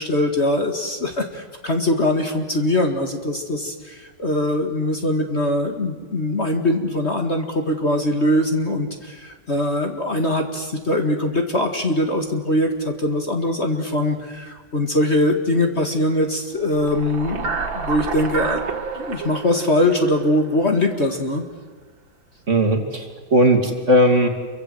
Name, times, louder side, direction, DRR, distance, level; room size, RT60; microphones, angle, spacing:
voice 1, 0.0-18.6 19.0-21.4, left 1 dB, 35° left, 4 dB, 2.1 m, -22 dB
sound 1, 16.7-21.0, right 4 dB, 80° right, 2.6 m, -29 dB
voice 2, 22.5-24.3, equal, 40° right, 4 dB, 2.9 m, -17 dB
28.5 x 24.0 x 7.9 m, 1.5 s
omnidirectional pair, 2.1 m